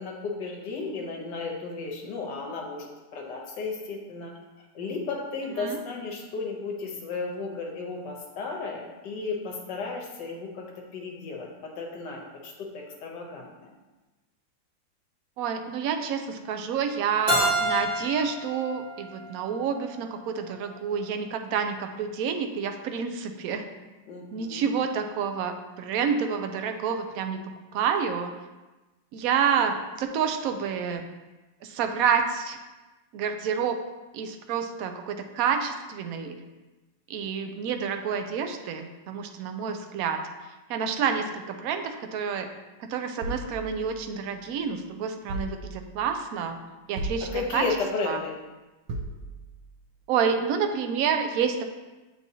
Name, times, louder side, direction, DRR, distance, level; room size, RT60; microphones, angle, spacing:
voice 1, 0.0-4.3 4.7-10.7 10.9-13.7 24.1-24.7 47.3-48.3, left 4 dB, 70° left, 0 dB, 1.5 m, -34 dB
voice 2, 15.4-23.7 24.3-27.4 27.7-28.3 29.1-31.0 31.6-32.6 33.1-33.8 34.1-36.4 37.1-40.2 40.7-42.5 42.8-46.6 46.9-47.7 48.1-48.2 50.1-51.6, right 7 dB, 75° right, 6 dB, 0.8 m, -28 dB
Keyboard (musical), 17.3-20.1, equal, 25° right, 1.0 m, -29 dB
sound 1, 43.2-44.6 45.3-46.1 47.0-47.9 48.9-49.7, right 1 dB, 90° right, 1.4 m, -37 dB
8.0 x 4.4 x 2.8 m, 1.1 s
omnidirectional pair, 2.0 m